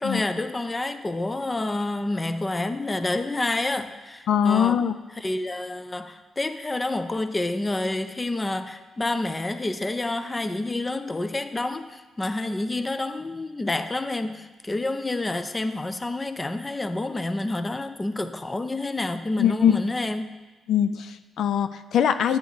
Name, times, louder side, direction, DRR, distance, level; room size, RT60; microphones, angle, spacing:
voice 1, 0.0-4.8 5.2-20.4, left 2 dB, 15° left, 10 dB, 0.5 m, -28 dB
voice 2, 4.3-5.0 19.4-19.8 20.7-22.4, left 9 dB, 70° left, 11 dB, 0.4 m, -22 dB
10.0 x 9.5 x 3.9 m, 1.2 s
cardioid pair, 140°, 0 cm